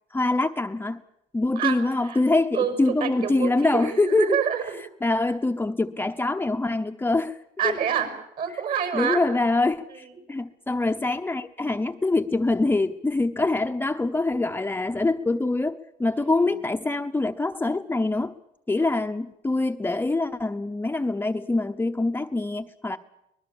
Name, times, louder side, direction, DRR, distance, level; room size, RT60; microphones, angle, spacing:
voice 1, 0.1-1.0 1.3-4.4 5.0-7.4 7.6-7.7 8.9-18.3 18.7-23.0, left 2 dB, 10° left, 6 dB, 0.9 m, -24 dB
voice 2, 2.5-4.8 7.6-8.1 8.4-9.2 9.9-10.2 16.2-16.6 18.8-19.0, right 8 dB, 55° right, 8 dB, 5.8 m, -28 dB
24.0 x 20.0 x 7.2 m, 0.81 s
cardioid pair, 110°, 17 cm